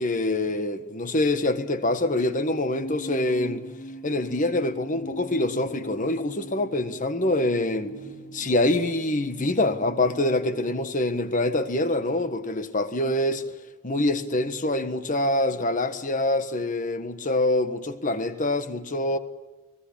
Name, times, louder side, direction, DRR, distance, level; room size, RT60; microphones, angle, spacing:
voice 1, 0.0-3.7 4.0-7.9 8.3-13.4 13.8-19.2, left 2 dB, 40° left, 1.5 m, -25 dB
sound 1, 2.7-10.9, right 1 dB, 75° left, 6.0 m, -41 dB
25.5 x 19.0 x 8.6 m
head